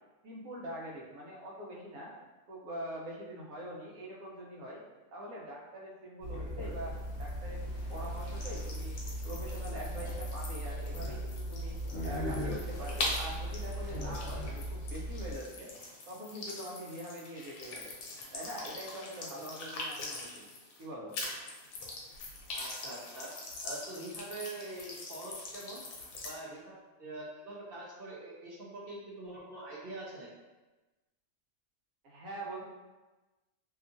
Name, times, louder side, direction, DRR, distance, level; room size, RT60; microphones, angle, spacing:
voice 1, 0.2-2.1 2.5-4.8 5.1-9.0 9.2-11.8 12.0-15.7 16.1-17.9 18.3-20.5 20.8-21.1 32.0-32.6, equal, 80° right, -4 dB, 1.1 m, -44 dB
sound 1, 6.2-15.4, equal, 60° left, 1.0 m, -38 dB
sound 2, 6.6-20.9 21.1-26.4, left 2 dB, 90° left, 1.1 m, -43 dB
voice 2, 22.5-23.3 23.6-25.8 26.2-26.7 27.0-30.3, right 2 dB, 60° right, -5 dB, 0.6 m, -44 dB
2.8 x 2.4 x 2.5 m, 1.2 s
omnidirectional pair, 1.4 m